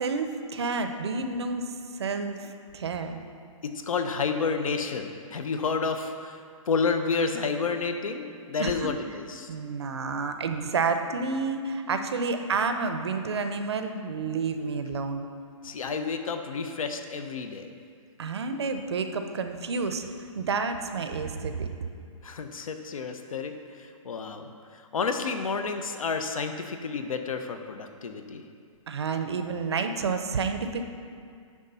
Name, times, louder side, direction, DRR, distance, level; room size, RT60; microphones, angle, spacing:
voice 1, 0.0-1.7 1.9-3.2 8.6-8.9 9.5-15.3 18.2-20.1 20.3-21.7 28.9-30.8, right 4 dB, 50° right, 7 dB, 0.6 m, -30 dB
voice 2, 3.9-6.4 6.7-9.5 15.6-17.7 22.2-23.5 23.8-28.4, left 5 dB, 75° left, 7 dB, 0.8 m, -30 dB
9.8 x 3.6 x 5.5 m, 2.2 s
hypercardioid pair, 175°, 17 cm